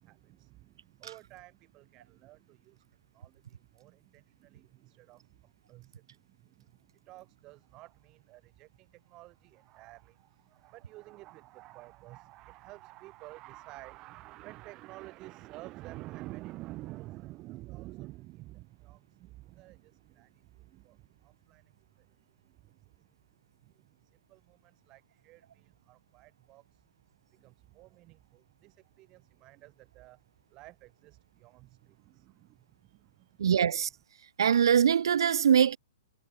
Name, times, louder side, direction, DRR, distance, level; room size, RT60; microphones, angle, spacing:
voice 1, 0.0-2.9 3.1-22.1 22.4-23.0 23.6-26.8 27.3-30.2 30.5-33.4, right 19 dB, 25° right, 1.0 m, -50 dB
voice 2, 33.4-33.9 34.4-35.8, right 8 dB, 80° right, 0.5 m, -23 dB
hypercardioid pair, 165°, 2 cm